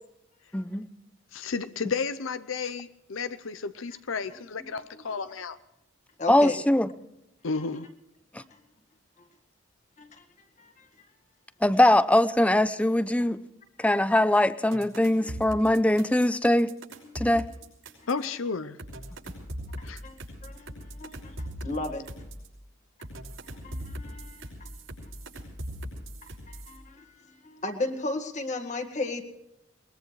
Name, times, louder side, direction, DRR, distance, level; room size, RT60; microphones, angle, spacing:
voice 1, 0.5-0.9 6.3-6.9 11.6-13.4 13.8-16.7 17.1-17.5, left 1 dB, 5° left, 14 dB, 0.5 m, -22 dB
voice 2, 1.3-5.6 7.4-7.9 18.1-18.8 19.8-20.0, left 4 dB, 80° left, 12 dB, 0.7 m, -32 dB
voice 3, 6.2-6.6 10.0-10.2 10.6-10.9 13.8-13.9 15.2-15.3 17.0-17.3 20.0-22.0 23.6-24.5 26.5-29.2, left 2 dB, 35° left, 5 dB, 1.9 m, -35 dB
sound 1, 14.7-18.2 18.8-22.5 23.0-26.8, equal, 80° right, 5.7 m, -40 dB
22.0 x 20.5 x 3.2 m, 0.84 s
head